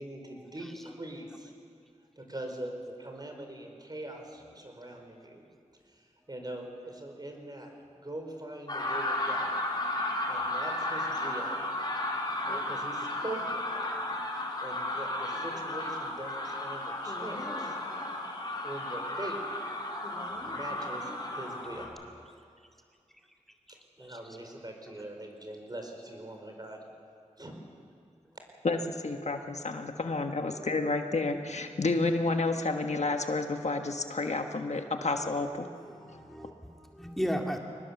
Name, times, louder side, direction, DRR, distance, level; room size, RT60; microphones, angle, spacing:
voice 1, 0.0-1.5 2.2-5.4 5.9-7.7 8.0-9.6 10.3-11.6 12.4-13.6 14.6-17.8 18.6-19.4 20.2-21.9 23.7-26.8 27.4-27.5, right 1 dB, 35° right, 3 dB, 4.4 m, -42 dB
sound 1, 8.7-21.9, left 1 dB, 35° left, 4.3 m, -34 dB
voice 2, 28.6-35.7, left 3 dB, 65° left, 5 dB, 1.4 m, -30 dB
voice 3, 35.6-37.6, equal, ahead, 2 dB, 2.2 m, -35 dB
23.0 x 19.5 x 7.2 m, 2.3 s
cardioid pair, 50°, 12 cm